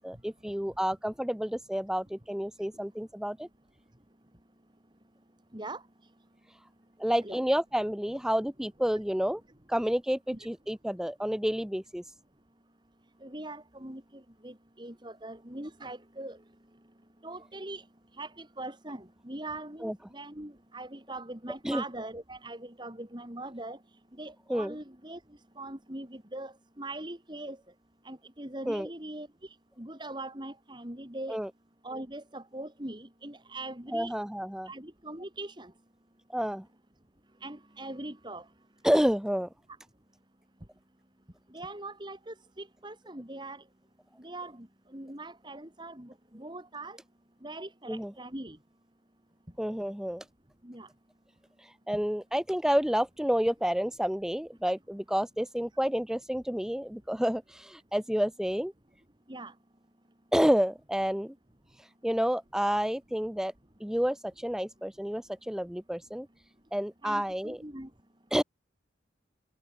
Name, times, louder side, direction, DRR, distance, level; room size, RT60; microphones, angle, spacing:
voice 1, 0.0-3.5 7.0-9.4 9.7-12.0 19.8-19.9 21.6-21.8 24.5-24.7 28.7-28.9 31.3-31.5 33.9-34.7 36.3-36.7 38.8-39.5 47.9-48.1 49.6-50.2 51.9-58.7 60.3-61.3 62.0-63.5 63.8-66.3 66.7-67.6 68.3-68.4, equal, 5° right, 0.5 m, -29 dB
voice 2, 13.2-14.0 14.4-16.4 17.2-17.8 18.2-23.8 24.2-25.2 25.6-27.6 28.0-29.3 29.8-31.4 31.8-34.1 34.7-35.7 37.4-38.4 41.5-43.6 44.2-44.7 44.9-47.0 47.4-48.6 50.6-50.9 59.3-59.5 67.0-67.9, right 2 dB, 25° right, 2.9 m, -41 dB
head